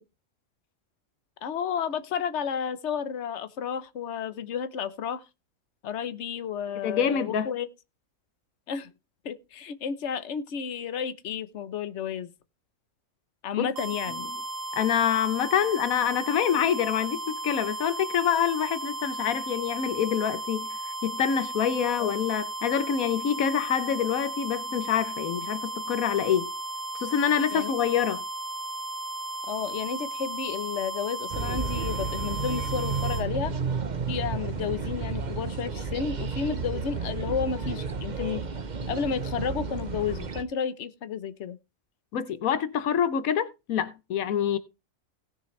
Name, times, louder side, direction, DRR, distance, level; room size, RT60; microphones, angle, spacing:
voice 1, 1.4-5.2 5.8-7.7 8.7-8.9 9.2-12.3 13.4-14.3 22.0-22.1 27.5-27.7 28.0-28.1 29.5-33.5 34.1-38.4 38.9-41.6, left 7 dB, 60° left, 1.2 m, -32 dB
voice 2, 6.8-7.5 13.6-13.7 14.1-14.2 14.7-20.7 21.0-26.5 26.9-28.2 42.1-44.6, left 8 dB, 85° left, 1.2 m, -26 dB
sound 1, 13.8-33.2, right 2 dB, 70° right, 2.0 m, -35 dB
sound 2, 31.3-40.4, right 5 dB, 40° right, 0.9 m, -32 dB
17.5 x 6.9 x 3.2 m
omnidirectional pair, 1.4 m